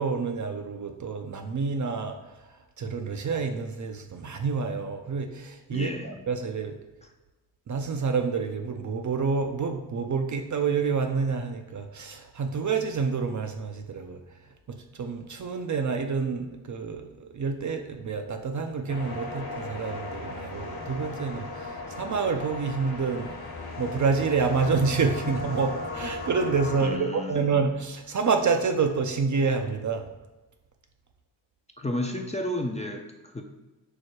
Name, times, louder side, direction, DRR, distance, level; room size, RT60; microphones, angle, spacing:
voice 1, 0.0-6.8 7.7-14.2 14.7-23.5 23.8-30.1, right 5 dB, 40° right, 5 dB, 0.6 m, -28 dB
voice 2, 5.7-6.1 26.8-27.5 31.8-33.4, left 1 dB, 15° left, 2 dB, 0.5 m, -32 dB
sound 1, 18.9-26.9, left 2 dB, 45° left, 1.2 m, -36 dB
4.7 x 2.1 x 4.4 m, 1.1 s
supercardioid pair, 40°, 49 cm